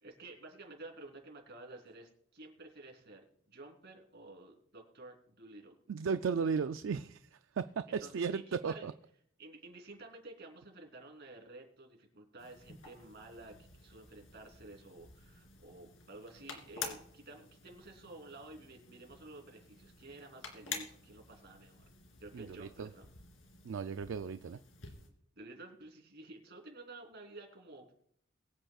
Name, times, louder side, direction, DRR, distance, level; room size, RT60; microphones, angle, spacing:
voice 1, 0.0-5.8 7.9-8.9 9.4-21.8 22.2-23.1 25.3-27.9, right 2 dB, 60° right, 3.3 m, -52 dB
voice 2, 5.9-7.6 7.9-8.9 22.3-22.9 23.6-24.6, right 5 dB, 75° right, 0.4 m, -35 dB
sound 1, 12.4-25.1, left 5 dB, 90° left, 2.8 m, -50 dB
22.5 x 8.9 x 2.4 m
head